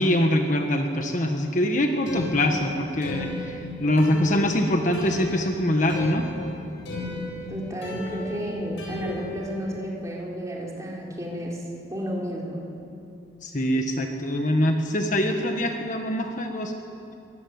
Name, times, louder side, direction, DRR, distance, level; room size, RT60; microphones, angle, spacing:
voice 1, 0.0-3.5 3.8-6.3 13.4-16.7, left 1 dB, 40° left, 4 dB, 1.5 m, -24 dB
sound 1, 2.1-9.7, left 2 dB, 70° left, 7.1 m, -35 dB
voice 2, 7.5-11.6 11.9-12.8, equal, 15° right, -3 dB, 4.3 m, -32 dB
24.0 x 19.0 x 9.6 m, 2.6 s
head